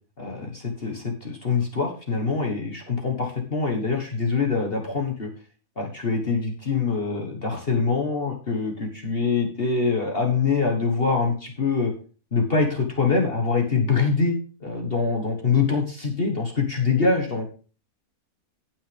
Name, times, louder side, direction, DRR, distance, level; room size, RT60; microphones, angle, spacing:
voice 1, 0.2-5.3 5.8-11.9 12.3-14.3 14.6-17.5, left 4 dB, 40° left, 1 dB, 1.6 m, -24 dB
18.0 x 6.0 x 3.4 m, 0.37 s
omnidirectional pair, 1.6 m